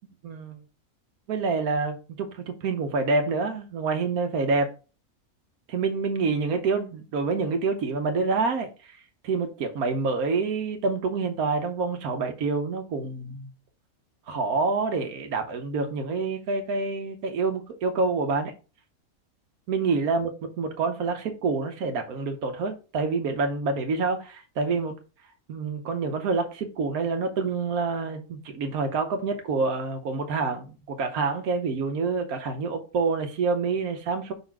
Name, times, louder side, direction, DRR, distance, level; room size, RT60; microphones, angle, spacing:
voice 1, 0.2-0.6 1.3-4.7 5.7-9.0 9.2-13.5 14.3-18.5 19.7-20.3 20.6-24.9 25.5-34.3, right 4 dB, 85° right, 1.3 m, -27 dB
5.6 x 4.1 x 4.6 m
omnidirectional pair, 1.5 m